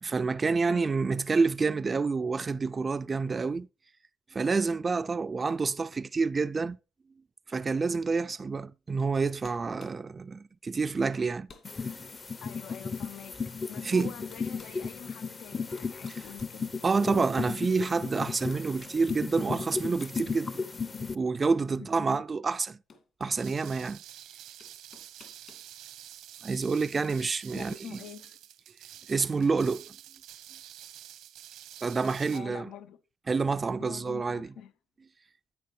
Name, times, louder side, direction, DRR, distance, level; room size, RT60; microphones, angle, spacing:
voice 1, 0.0-3.7 4.3-6.8 7.5-11.5 12.0-12.1 13.8-14.1 16.1-16.2 16.8-20.6 21.1-22.8 23.2-24.0 26.4-28.0 29.1-29.9 31.8-32.7 33.3-34.5, right 4 dB, 30° right, 0.4 m, -28 dB
voice 2, 0.7-1.0 12.4-13.4 13.7-16.7 21.8-22.2 27.5-28.4 32.3-33.0 33.8-34.7, left 9 dB, 80° left, 0.7 m, -46 dB
sound 1, 9.0-9.1 9.4-10.0 10.7-10.9 11.1-11.7 12.3-12.4 13.5-13.6 14.0-14.8 15.5-17.1 18.5-19.3 19.7-20.4 20.7-20.8 22.2-22.3 22.9-23.6 24.6-25.7, left 5 dB, 50° left, 2.2 m, -55 dB
sound 2, 11.6-21.1, left 4 dB, 30° left, 0.7 m, -35 dB
sound 3, 23.4-32.4, right 12 dB, 90° right, 1.0 m, -48 dB
10.5 x 8.4 x 3.2 m
cardioid pair, 90°, 0 cm